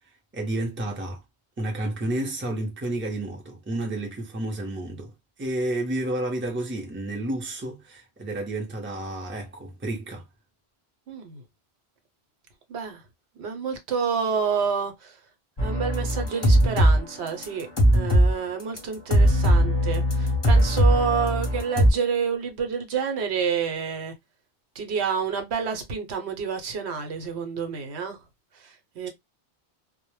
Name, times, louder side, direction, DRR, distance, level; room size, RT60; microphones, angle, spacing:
voice 1, 0.3-1.2 1.6-5.1 5.4-10.2, right 1 dB, 15° right, 0.5 m, -30 dB
voice 2, 11.1-11.4 12.7-13.0 13.4-15.2 15.6-17.7 17.9-24.1 24.7-28.2 28.6-29.1, right 6 dB, 85° right, 0.9 m, -28 dB
sound 1, 15.6-17.0 17.3-18.3 18.8-18.9 19.1-21.9, equal, 30° left, 0.6 m, -20 dB
2.1 x 2.0 x 3.0 m
omnidirectional pair, 1.1 m